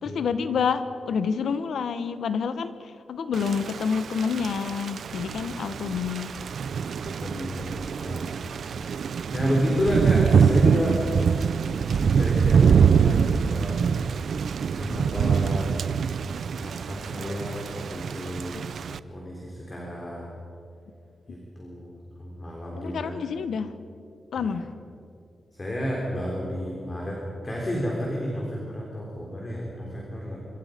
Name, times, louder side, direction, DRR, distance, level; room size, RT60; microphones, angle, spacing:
voice 1, 0.0-6.4 21.3-21.4 22.8-23.7 24.3-24.7, left 6 dB, 85° left, 11 dB, 1.2 m, -28 dB
Thunder / Rain, 3.3-19.0, right 6 dB, 65° right, 0.5 m, -24 dB
voice 2, 7.0-8.4 9.0-11.0 12.0-13.8 14.7-15.7 16.6-18.6 18.9-20.3 21.3-21.9 22.2-23.2 24.4-24.5 25.5-30.4, equal, 25° left, -2 dB, 3.7 m, -31 dB
26.0 x 24.5 x 5.2 m, 2.6 s
wide cardioid pair, 150°, 0 cm